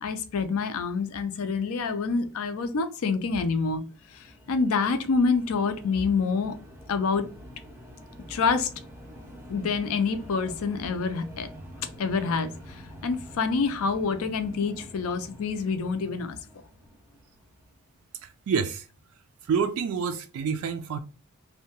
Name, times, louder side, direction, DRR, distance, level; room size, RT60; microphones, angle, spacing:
voice 1, 0.0-3.8 4.1-6.6 6.9-7.3 8.3-8.7 9.5-11.5 12.0-16.4, left 4 dB, 70° left, 0.4 m, -27 dB
sound 1, 3.6-17.9, equal, 10° right, 0.5 m, -47 dB
voice 2, 18.2-18.9 19.4-21.0, right 6 dB, 75° right, 0.3 m, -28 dB
2.7 x 2.2 x 2.8 m
head